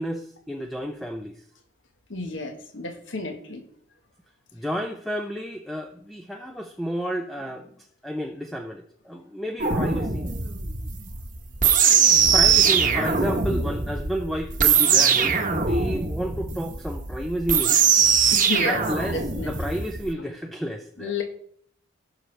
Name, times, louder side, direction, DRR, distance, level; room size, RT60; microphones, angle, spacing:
voice 1, 0.0-1.4 4.5-7.7 8.0-10.2 12.3-17.8 18.6-21.1, equal, ahead, 4 dB, 0.6 m, -31 dB
voice 2, 2.1-3.6 18.3-18.8 19.1-19.5 21.0-21.2, left 3 dB, 60° left, 4 dB, 1.5 m, -31 dB
sound 1, 9.6-20.0, right 6 dB, 40° right, 1.1 m, -21 dB
17.5 x 6.2 x 3.4 m, 0.63 s
head